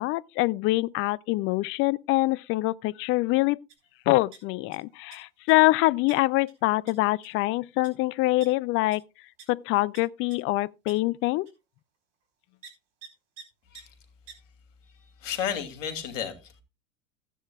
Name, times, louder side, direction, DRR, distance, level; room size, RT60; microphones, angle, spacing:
voice 1, 0.0-3.6 4.1-9.0 9.5-11.5, left 20 dB, 35° left, 0.4 m, -25 dB
sound 1, 3.7-3.8 4.1-4.8 5.1-5.5 6.1-6.2 6.5-6.6 6.9-7.0 7.2-7.4 7.8-7.9 8.4-8.5 8.9-9.0 9.4-9.5 9.9-10.0 10.3-10.4 10.9-11.0 11.4-11.5 12.6-12.7 13.0-13.1 13.4-13.5 13.7-13.8 14.3-14.4, right 6 dB, 65° right, 4.3 m, -46 dB
voice 2, 15.2-16.6, left 8 dB, 70° left, 2.7 m, -32 dB
15.5 x 10.0 x 2.3 m
hypercardioid pair, 90°, 39 cm